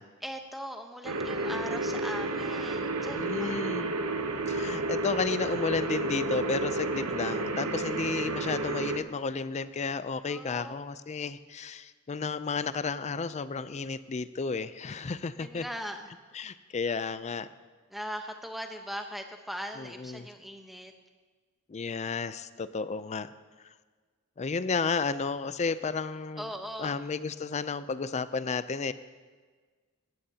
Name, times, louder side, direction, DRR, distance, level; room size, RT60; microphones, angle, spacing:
voice 1, 0.2-3.5 10.3-10.8 15.4-16.1 17.9-20.9 26.4-27.0, equal, ahead, 4 dB, 0.9 m, -40 dB
sound 1, 1.0-9.0, right 2 dB, 80° right, 1.0 m, -31 dB
voice 2, 3.1-3.9 4.5-15.6 16.3-17.5 19.8-20.3 21.7-23.3 24.4-26.5 26.8-28.9, left 4 dB, 30° left, 14 dB, 0.4 m, -32 dB
18.0 x 14.5 x 2.8 m, 1.5 s
head